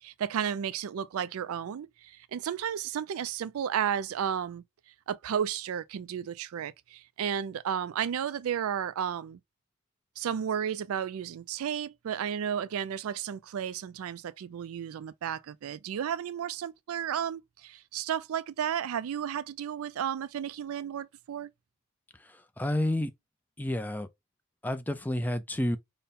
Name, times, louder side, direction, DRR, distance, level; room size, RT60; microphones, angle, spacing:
voice 1, 0.0-4.6 5.1-9.4 10.2-21.5, right 8 dB, 80° right, 0.3 m, -33 dB
voice 2, 22.6-23.1 23.6-24.1 24.6-25.8, left 1 dB, 10° left, 0.3 m, -29 dB
5.2 x 2.1 x 4.2 m
head